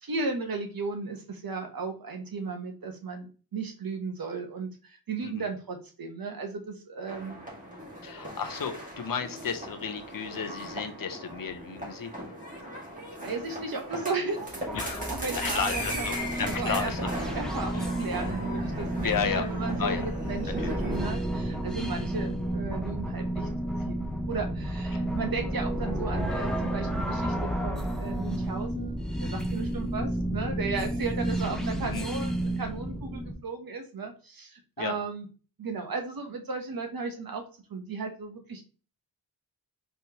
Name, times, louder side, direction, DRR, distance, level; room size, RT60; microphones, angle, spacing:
voice 1, 0.0-7.4 13.2-23.5 23.8-35.3 35.6-37.4 37.7-38.7, right 4 dB, 55° right, 4 dB, 1.0 m, -35 dB
sound 1, 7.1-21.1, equal, 20° right, 1.7 m, -38 dB
voice 2, 8.0-12.1 14.7-15.1 15.3-17.1 17.7-17.8 19.0-19.5 19.8-20.1 20.6-20.8 31.8-32.1 34.8-35.0, left 6 dB, 55° left, 7 dB, 0.7 m, -33 dB
sound 2, 14.5-33.3, right 1 dB, ahead, 0.7 m, -31 dB
4.3 x 3.4 x 2.8 m, 0.36 s
wide cardioid pair, 120°, 41 cm